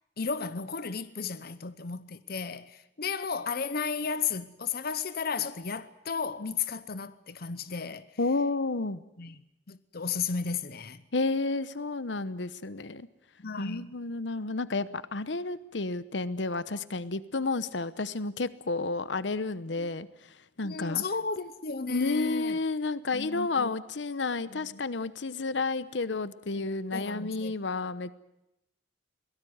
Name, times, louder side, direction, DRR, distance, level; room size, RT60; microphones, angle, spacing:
voice 1, 0.2-8.1 9.2-9.3 9.7-11.0 13.4-13.9 19.8-19.9 20.6-22.6 23.1-23.7 24.5-24.8 26.6-27.5, left 5 dB, 55° left, 0.8 m, -34 dB
voice 2, 8.2-9.0 11.1-13.1 13.6-21.0 21.9-28.1, left 3 dB, 80° left, 1.0 m, -31 dB
23.0 x 18.5 x 9.4 m
head